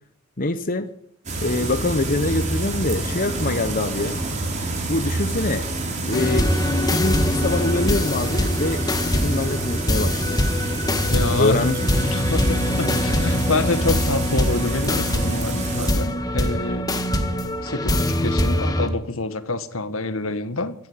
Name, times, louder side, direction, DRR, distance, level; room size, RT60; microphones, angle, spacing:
voice 1, 0.4-0.9 1.4-4.2 4.9-5.7 6.1-6.5 6.9-10.4 11.4-12.1, left 2 dB, 40° left, 9 dB, 1.1 m, -25 dB
sound 1, 1.3-15.9, right 2 dB, 35° right, 4.8 m, -27 dB
sound 2, 6.1-18.9, left 1 dB, 20° left, 1.9 m, -23 dB
voice 2, 11.1-16.9 17.6-20.8, left 2 dB, 75° left, 11 dB, 1.8 m, -26 dB
25.0 x 10.5 x 9.8 m, 0.71 s
head